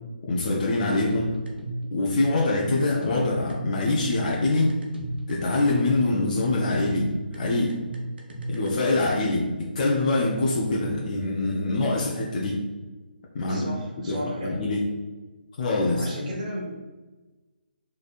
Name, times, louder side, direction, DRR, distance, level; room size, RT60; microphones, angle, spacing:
voice 1, 0.2-1.3 1.9-4.7 5.3-7.8 8.5-12.6 13.3-13.7 14.1-14.8 15.6-16.1, left 2 dB, 45° left, -3 dB, 0.6 m, -24 dB
sound 1, 1.1-8.7, right 1 dB, 70° right, 1.0 m, -33 dB
voice 2, 13.5-14.6 15.9-16.8, equal, 40° right, -3 dB, 1.2 m, -34 dB
4.1 x 3.2 x 2.4 m, 1.2 s
figure-of-eight pair, 150°, 6 cm